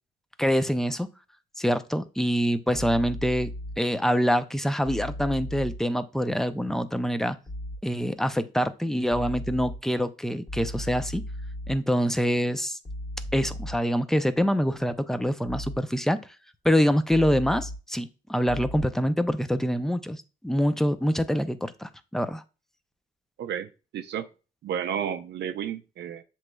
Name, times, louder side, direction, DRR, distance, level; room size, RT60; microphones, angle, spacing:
voice 1, 0.4-1.1 1.6-7.4 7.8-11.2 11.7-12.8 13.3-16.2 16.6-22.4, equal, ahead, 0.4 m, -25 dB
sound 1, 2.7-3.8 4.9-5.8 7.5-7.8 9.1-9.8 10.5-11.8 12.9-13.8 15.5-15.8 17.1-17.8 18.5-18.9, equal, 30° left, 1.3 m, -36 dB
voice 2, 23.4-24.3 24.6-26.2, right 9 dB, 60° right, 0.5 m, -32 dB
7.5 x 3.1 x 2.2 m
cardioid pair, 90°, 20 cm